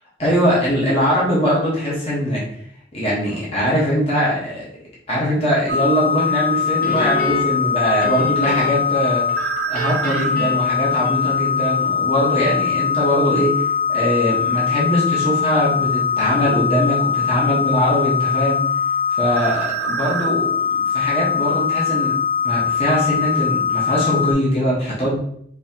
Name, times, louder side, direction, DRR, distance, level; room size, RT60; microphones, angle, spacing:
voice 1, 0.2-2.4 2.9-4.7 5.1-9.2 9.7-18.6 19.2-22.1 22.4-25.2, equal, 30° left, -6 dB, 1.1 m, -21 dB
sound 1, 5.7-24.3, left 6 dB, 55° right, 1.0 m, -21 dB
Guitar, 6.8-9.0 9.3-11.6, equal, 50° left, 0.6 m, -31 dB
5.4 x 2.8 x 2.8 m, 0.67 s
head